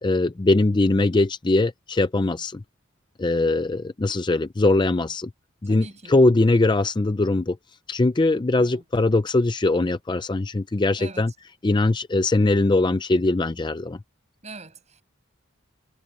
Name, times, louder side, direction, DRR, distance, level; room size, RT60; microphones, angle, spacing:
voice 1, 0.0-2.6 3.2-5.3 5.6-7.6 7.9-11.3 11.6-14.0, left 2 dB, 20° left, 0.5 m, -21 dB
voice 2, 5.6-6.2 8.6-8.8 11.0-11.2 14.4-15.0, right 3 dB, 35° right, 6.8 m, -42 dB
head